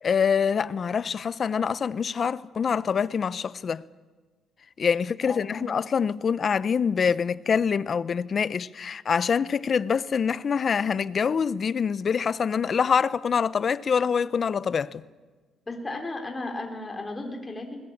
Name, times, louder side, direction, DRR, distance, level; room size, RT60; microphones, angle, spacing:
voice 1, 0.0-3.8 4.8-15.0, left 6 dB, 45° left, 0.7 m, -25 dB
voice 2, 5.3-5.6 15.7-17.9, left 2 dB, 25° left, 3.6 m, -35 dB
21.0 x 20.0 x 8.7 m
cardioid pair, 90°, 0 cm